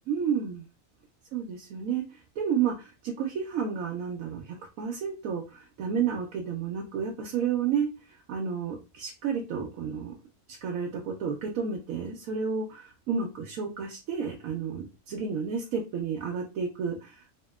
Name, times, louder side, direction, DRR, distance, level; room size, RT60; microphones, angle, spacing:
voice 1, 0.1-0.6 1.3-2.0 2.4-7.9 8.3-10.1 10.6-17.3, right 6 dB, 80° right, 0 dB, 1.0 m, -31 dB
2.8 x 2.8 x 2.2 m, 0.29 s
omnidirectional pair, 1.4 m